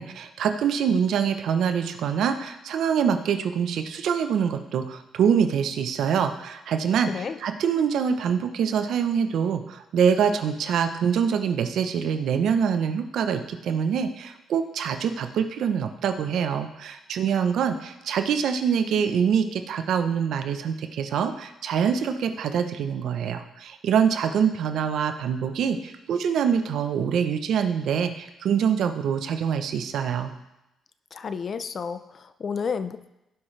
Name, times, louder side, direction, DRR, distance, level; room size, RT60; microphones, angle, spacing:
voice 1, 0.0-30.3, right 7 dB, 75° right, 8 dB, 0.8 m, -25 dB
voice 2, 7.1-7.4 31.1-33.1, left 6 dB, 50° left, 12 dB, 0.6 m, -31 dB
16.5 x 5.8 x 3.3 m, 0.94 s
cardioid pair, 90°, 0 cm